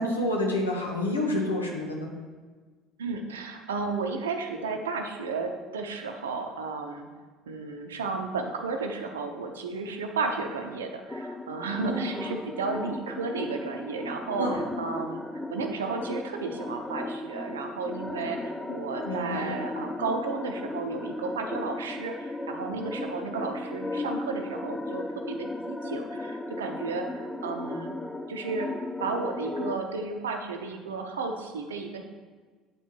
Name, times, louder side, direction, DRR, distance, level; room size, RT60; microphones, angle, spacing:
voice 1, 0.0-2.1 11.8-12.2 14.4-14.6 19.0-19.5, left 1 dB, 85° left, -1 dB, 1.0 m, -28 dB
voice 2, 3.0-7.1 7.5-28.0 28.3-28.7 29.0-32.0, right 4 dB, 80° right, 5 dB, 0.7 m, -33 dB
sound 1, 11.1-29.8, left 2 dB, 10° left, 0.5 m, -36 dB
8.0 x 4.6 x 4.6 m, 1.4 s
figure-of-eight pair, 60°, 0 cm